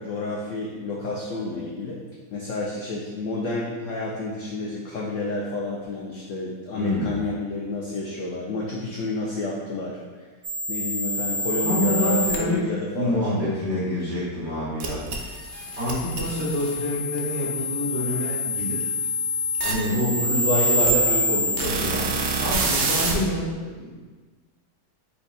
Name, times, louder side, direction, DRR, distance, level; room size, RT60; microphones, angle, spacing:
voice 1, 0.0-2.0 2.3-10.3 10.7-13.5 20.1-21.6, left 2 dB, 75° left, -3 dB, 0.7 m, -29 dB
voice 2, 6.7-7.1 11.6-12.6 12.9-15.0 15.8-18.9 19.6-20.9 21.5-24.0, left 1 dB, 30° right, -10 dB, 1.3 m, -27 dB
sound 1, 10.4-12.4 14.8-23.1, equal, 90° right, 0.6 m, -26 dB
4.7 x 2.3 x 4.0 m, 1.4 s
omnidirectional pair, 1.8 m